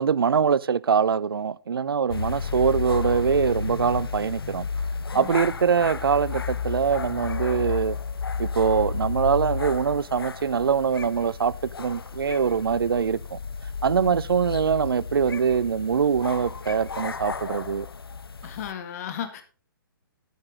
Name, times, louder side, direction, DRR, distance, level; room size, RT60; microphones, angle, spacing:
voice 1, 0.0-4.7 5.1-8.0 8.4-13.4 13.8-17.9, right 6 dB, 75° right, 0.5 m, -23 dB
sound 1, 2.1-18.7, left 5 dB, 85° left, 0.7 m, -32 dB
voice 2, 18.4-19.4, left 9 dB, 45° left, 2.0 m, -35 dB
10.5 x 9.2 x 3.7 m
figure-of-eight pair, 135°, 12 cm